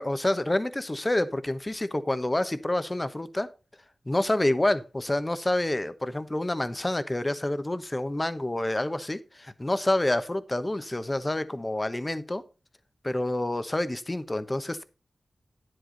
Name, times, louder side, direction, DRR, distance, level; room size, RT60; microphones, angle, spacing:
voice 1, 0.0-3.5 4.1-12.4 13.0-14.8, left 1 dB, 25° left, 1.0 m, -28 dB
9.9 x 7.8 x 3.9 m
cardioid pair, 45°, 0 cm